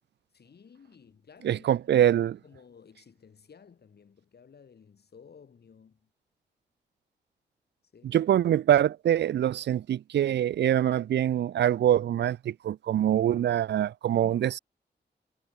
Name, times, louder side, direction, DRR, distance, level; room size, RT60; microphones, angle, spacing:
voice 1, 0.3-1.7 2.4-6.1 7.9-8.2 14.1-14.4, left 6 dB, 70° left, 7.9 m, -54 dB
voice 2, 1.4-2.4 8.0-14.6, right 11 dB, 85° right, 0.6 m, -24 dB
cardioid pair, 60°, 18 cm